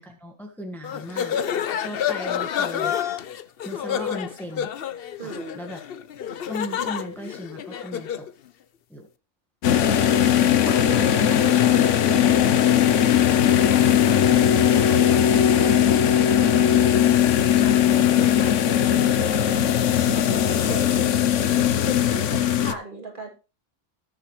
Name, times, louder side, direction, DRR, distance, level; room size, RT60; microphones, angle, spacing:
voice 1, 0.0-1.4 1.8-3.0 3.6-4.7 5.2-5.8 6.4-8.3 8.9-9.1, equal, ahead, 3 dB, 1.4 m, -37 dB
sound 1, 0.8-8.3, left 9 dB, 55° left, 0.8 m, -29 dB
voice 2, 5.2-5.6 10.7-12.7 14.7-15.8 18.1-18.6 19.2-19.6 20.1-21.2 21.5-23.3, equal, 40° right, 1 dB, 2.9 m, -37 dB
sound 2, 9.6-22.7, left 9 dB, 80° left, 1.1 m, -19 dB
19.5 x 7.1 x 3.1 m, 0.30 s
omnidirectional pair, 1.3 m